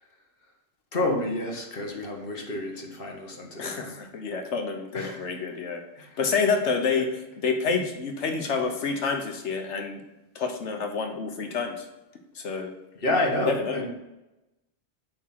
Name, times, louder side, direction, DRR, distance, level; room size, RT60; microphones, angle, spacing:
voice 1, 0.9-4.0 4.9-5.3 6.0-6.2 6.9-7.1 12.9-13.9, left 1 dB, 55° left, 1 dB, 1.5 m, -29 dB
voice 2, 3.6-5.8 6.2-7.1 7.4-10.0 10.3-11.8 12.3-12.7 13.5-13.8, left 5 dB, 75° left, 4 dB, 1.2 m, -28 dB
8.5 x 3.7 x 5.9 m, 0.97 s
omnidirectional pair, 1.2 m